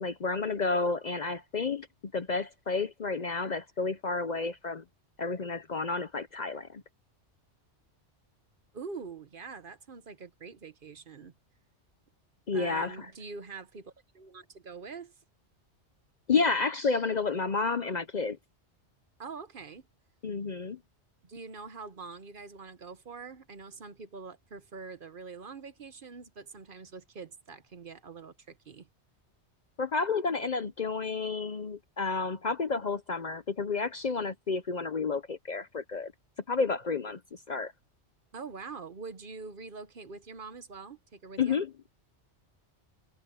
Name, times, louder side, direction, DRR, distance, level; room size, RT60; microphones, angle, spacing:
voice 1, 0.0-4.8 5.2-6.8 12.5-13.1 16.3-18.4 20.2-20.8 29.8-36.1 36.5-37.7 41.4-41.7, left 4 dB, 45° left, 0.7 m, -31 dB
voice 2, 8.7-11.3 12.5-15.1 19.2-19.8 21.2-28.9 38.3-41.6, right 4 dB, 50° right, 1.1 m, -44 dB
omnidirectional pair, 1.2 m